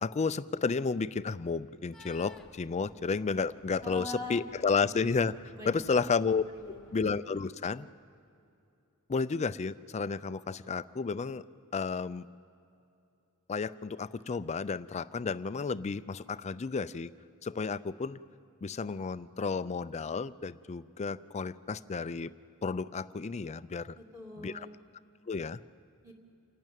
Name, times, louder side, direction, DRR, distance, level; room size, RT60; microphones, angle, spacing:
voice 1, 0.0-6.4 6.9-7.9 9.1-11.4 11.7-12.3 13.5-17.1 17.4-18.2 18.6-22.3 22.6-24.0 24.4-24.5 25.3-25.6, left 5 dB, 30° left, 15 dB, 0.4 m, -32 dB
sound 1, 1.9-7.3, left 1 dB, ahead, 1.1 m, -58 dB
voice 2, 3.8-4.9 5.6-6.1 6.5-7.0 23.9-24.7 26.0-26.1, left 1 dB, 15° right, -1 dB, 2.3 m, -43 dB
28.0 x 12.0 x 9.1 m, 2.6 s
head